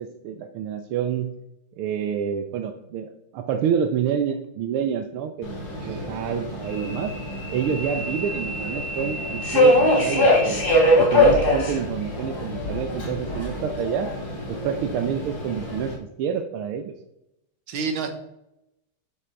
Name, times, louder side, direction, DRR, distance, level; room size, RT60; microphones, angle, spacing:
voice 1, 0.0-1.4 1.8-5.5 5.8-7.1 7.5-10.6 11.0-14.2 14.5-16.9, right 8 dB, 85° right, 6 dB, 1.6 m, -28 dB
Subway metro underground, 5.4-15.9, left 1 dB, 50° left, 3.9 m, -23 dB
voice 2, 5.8-6.2 17.7-18.1, right 4 dB, 70° right, 6 dB, 2.1 m, -30 dB
11.0 x 6.4 x 4.5 m, 0.85 s
omnidirectional pair, 2.3 m